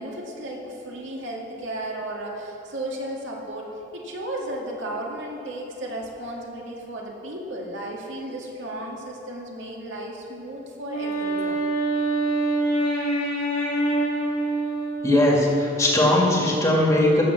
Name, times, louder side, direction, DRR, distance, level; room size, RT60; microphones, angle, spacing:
voice 1, 0.0-11.7, right 1 dB, 70° right, -2 dB, 2.1 m, -34 dB
Wind instrument woodwind instrument, 10.8-15.6, right 2 dB, 90° left, 3.0 m, -25 dB
voice 2, 15.0-17.2, left 1 dB, 15° left, -3 dB, 1.9 m, -19 dB
16.0 x 7.3 x 6.9 m, 2.9 s
head